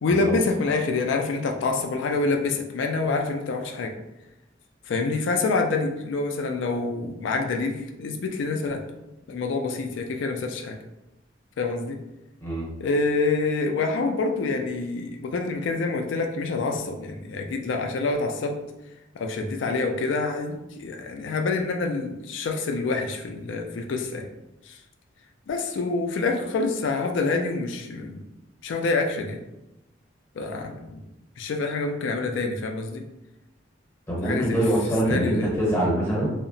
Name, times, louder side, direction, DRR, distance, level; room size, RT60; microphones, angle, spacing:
voice 1, 0.0-4.0 4.9-8.8 9.3-10.8 11.6-12.0 12.8-18.6 19.1-24.3 24.7-24.8 25.5-28.2 28.6-29.4 30.4-31.0 31.4-33.0 34.2-34.6 35.0-35.5, left 3 dB, 70° left, 4 dB, 0.3 m, -27 dB
voice 2, 34.1-36.3, right 1 dB, 15° left, -5 dB, 0.8 m, -24 dB
2.7 x 2.1 x 2.6 m, 0.94 s
head